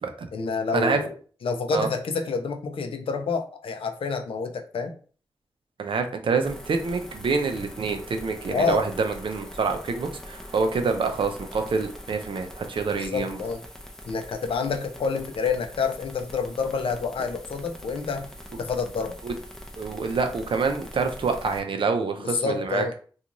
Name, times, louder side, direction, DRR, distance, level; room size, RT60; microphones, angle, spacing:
voice 1, 0.3-1.1 1.4-4.9 8.5-8.9 12.9-13.6 14.1-18.3 18.6-19.2 22.2-22.9, left 5 dB, 85° left, 6 dB, 0.4 m, -28 dB
voice 2, 5.8-13.4 19.2-19.3 19.8-22.8, right 4 dB, 70° right, 5 dB, 0.5 m, -26 dB
sound 1, 6.4-21.6, equal, 5° left, 0.5 m, -43 dB
2.5 x 2.3 x 2.9 m, 0.42 s
cardioid pair, 70°, 9 cm